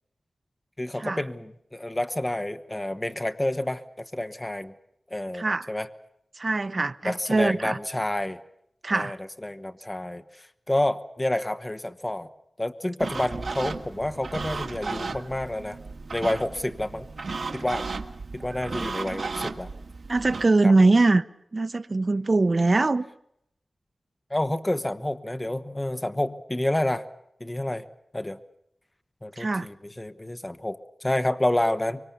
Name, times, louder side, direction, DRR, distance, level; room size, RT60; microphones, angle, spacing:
voice 1, 0.8-4.7 5.1-5.9 7.0-8.4 8.9-9.2 9.4-10.2 10.7-12.3 12.6-15.8 16.1-17.1 17.5-17.9 18.3-19.7 20.6-20.7 24.3-27.0 27.4-27.8 28.1-28.4 29.2-32.0, left 1 dB, 15° left, 1.3 m, -29 dB
voice 2, 5.3-5.7 6.4-7.8 8.8-9.2 20.1-21.2 21.5-23.1 29.4-29.7, right 3 dB, 40° right, 0.8 m, -22 dB
sound 1, 13.0-20.5, right 4 dB, 65° right, 1.8 m, -35 dB
25.0 x 24.0 x 6.9 m
wide cardioid pair, 110°, 0 cm